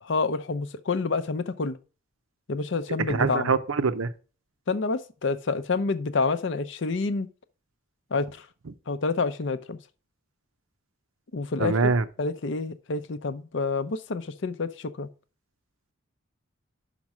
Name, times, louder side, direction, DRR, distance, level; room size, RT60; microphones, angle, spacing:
voice 1, 0.0-1.8 2.5-3.5 4.7-7.3 8.1-8.5 8.9-9.8 11.3-11.9 12.2-15.1, left 4 dB, 60° left, 0.6 m, -28 dB
voice 2, 3.1-4.1 11.6-12.0, right 4 dB, 80° right, 0.6 m, -24 dB
5.9 x 5.3 x 6.0 m
head